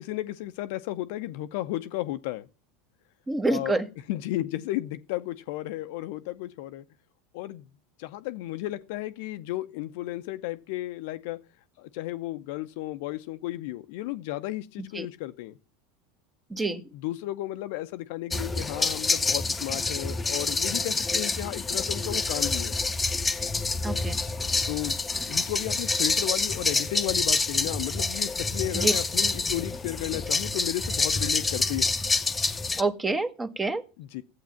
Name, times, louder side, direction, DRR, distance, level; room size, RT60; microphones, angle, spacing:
voice 1, 0.0-2.5 3.5-3.7 4.1-6.8 7.3-7.6 8.0-11.4 11.8-15.6 16.9-22.7 24.7-25.0 25.3-31.9 34.0-34.2, left 16 dB, 60° left, 0.7 m, -33 dB
voice 2, 3.3-3.9 14.8-15.1 16.5-16.8 23.8-24.2 28.7-28.9 32.8-33.8, right 3 dB, 15° right, 1.3 m, -27 dB
sound 1, 18.3-32.8, left 3 dB, 15° left, 0.9 m, -27 dB
12.5 x 8.2 x 5.8 m
figure-of-eight pair, 75°, 0 cm